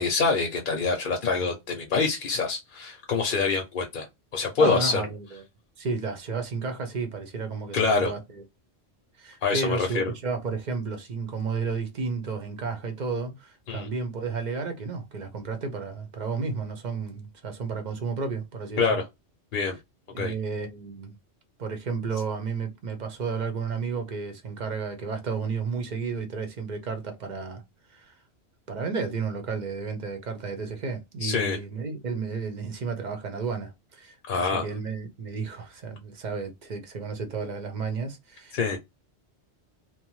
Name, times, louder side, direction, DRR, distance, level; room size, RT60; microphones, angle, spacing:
voice 1, 0.0-4.1 4.3-5.0 7.7-8.1 9.4-10.0 13.7-13.9 18.8-19.0 19.5-19.8 20.2-20.3 31.2-31.6 34.3-34.6 38.5-38.8, left 4 dB, 55° left, 0.7 m, -25 dB
voice 2, 4.6-5.4 5.8-8.2 9.2-19.0 20.1-21.1 21.6-27.6 27.9-28.1 28.7-38.8, right 4 dB, 50° right, 0.7 m, -32 dB
2.9 x 2.0 x 3.0 m
omnidirectional pair, 1.2 m